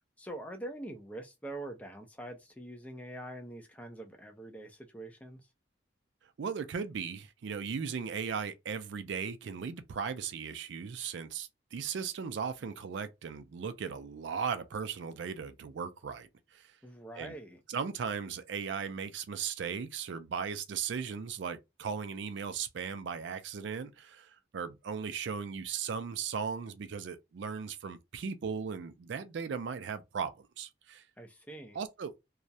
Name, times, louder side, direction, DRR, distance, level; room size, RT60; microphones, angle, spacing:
voice 1, 0.2-5.5 16.8-17.6 31.2-31.8, right 1 dB, 5° left, 0.4 m, -44 dB
voice 2, 6.4-16.7 17.2-17.4 17.7-31.0 31.7-32.1, right 6 dB, 70° right, 0.4 m, -37 dB
2.3 x 2.0 x 2.6 m
head